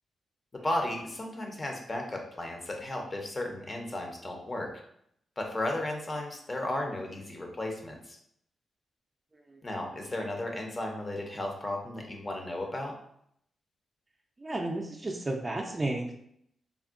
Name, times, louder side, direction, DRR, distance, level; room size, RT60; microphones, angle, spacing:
voice 1, 0.5-4.7 5.4-8.2 9.6-12.9, left 1 dB, 30° left, 2 dB, 0.7 m, -34 dB
voice 2, 14.4-16.1, right 2 dB, 25° right, 2 dB, 0.4 m, -33 dB
3.5 x 2.1 x 2.4 m, 0.70 s
cardioid pair, 90°, 0 cm